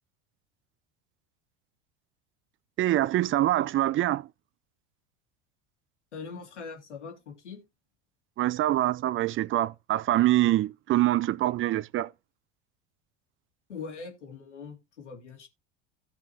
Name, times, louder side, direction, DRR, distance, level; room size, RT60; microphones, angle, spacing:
voice 1, 2.8-4.3 8.4-12.1, right 14 dB, 35° right, 0.7 m, -25 dB
voice 2, 6.1-7.6 13.7-15.5, left 5 dB, 85° left, 3.2 m, -42 dB
16.5 x 6.4 x 2.9 m
hypercardioid pair, 75°, 34 cm